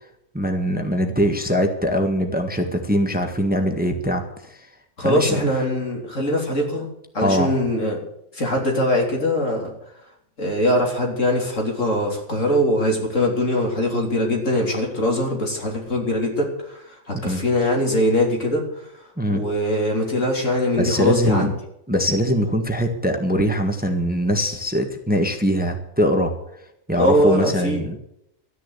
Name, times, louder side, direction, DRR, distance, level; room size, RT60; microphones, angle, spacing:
voice 1, 0.3-4.2 4.5-4.7 5.0-5.4 7.2-7.6 17.3-17.4 19.2-19.4 20.8-21.5 21.9-26.3 26.9-28.0, equal, 5° right, 5 dB, 1.5 m, -22 dB
voice 2, 5.0-6.9 7.1-8.0 8.3-9.7 10.4-18.6 19.3-21.5 27.0-27.9, left 1 dB, 70° left, 0 dB, 3.8 m, -22 dB
13.0 x 10.0 x 8.3 m, 0.78 s
omnidirectional pair, 1.4 m